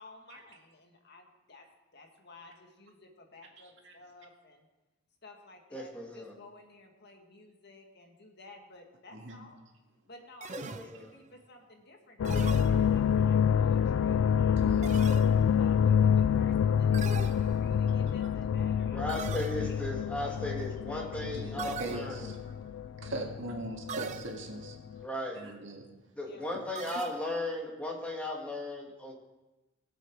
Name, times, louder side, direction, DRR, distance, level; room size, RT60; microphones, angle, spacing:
voice 1, 0.0-1.7 1.9-4.6 5.2-9.6 10.1-15.1 15.5-19.8 20.2-20.6 20.9-23.2 26.2-26.6, left 2 dB, 55° left, 3 dB, 1.7 m, -54 dB
voice 2, 3.6-3.9 9.1-9.5 14.6-15.0 21.2-22.4 23.0-24.8 25.3-25.9 26.5-26.7, right 2 dB, 65° right, 1 dB, 2.0 m, -40 dB
voice 3, 5.7-6.3 10.5-11.1 18.9-22.3 25.0-25.4 26.2-29.1, left 1 dB, 5° left, -1 dB, 1.9 m, -36 dB
sound 1, 10.4-11.3 12.2-13.3 14.8-15.7 16.9-17.9 19.1-19.9 21.6-22.5 23.9-24.7 26.8-27.6, right 5 dB, 35° right, 0.5 m, -42 dB
sound 2, 12.2-24.3 24.6-25.0, left 8 dB, 75° left, 0.3 m, -27 dB
21.0 x 7.8 x 4.6 m, 1.1 s
head